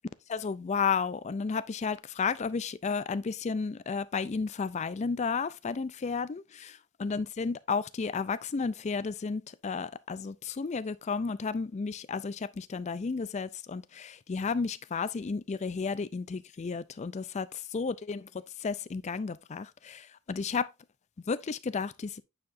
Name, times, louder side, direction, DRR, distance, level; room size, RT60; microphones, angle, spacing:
voice 1, 0.3-6.7 7.0-17.5 17.7-18.3 18.6-20.7 21.3-22.2, left 5 dB, 30° left, 0.3 m, -32 dB
8.7 x 4.7 x 2.6 m
head